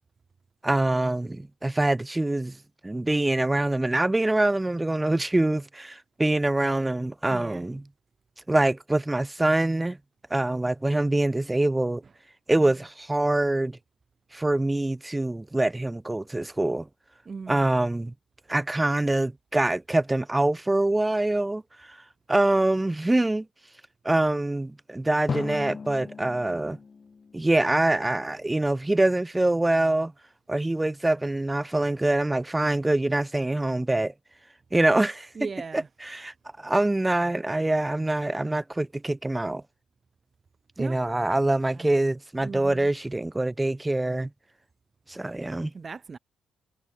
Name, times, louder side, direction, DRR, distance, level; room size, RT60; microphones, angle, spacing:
voice 1, 0.6-2.6 2.8-7.8 8.5-10.0 10.3-12.0 12.5-13.8 14.3-16.9 17.5-18.1 18.5-21.6 21.9-22.0 22.3-23.5 24.0-26.8 27.3-30.1 30.5-34.1 34.7-35.3 35.7-39.6 40.8-44.3 45.1-45.7, right 2 dB, 15° right, 0.8 m, -25 dB
voice 2, 7.3-7.7 17.3-17.6 35.3-35.9 40.8-41.0 41.7-41.9 42.4-42.9 45.7-46.2, right 5 dB, 35° right, 3.1 m, -38 dB
Drum, 25.3-28.2, left 5 dB, 35° left, 0.8 m, -36 dB
cardioid pair, 90°, 0 cm